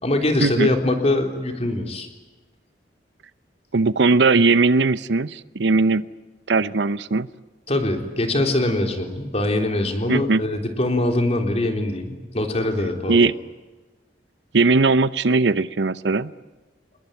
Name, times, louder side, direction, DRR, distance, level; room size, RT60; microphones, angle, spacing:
voice 1, 0.0-2.1 7.7-13.2, left 1 dB, 35° left, 4 dB, 3.7 m, -23 dB
voice 2, 3.7-6.0 6.5-7.3 10.1-10.4 13.1-13.3 14.5-16.3, right 3 dB, 75° right, 15 dB, 0.8 m, -19 dB
27.0 x 21.0 x 9.3 m, 1.2 s
head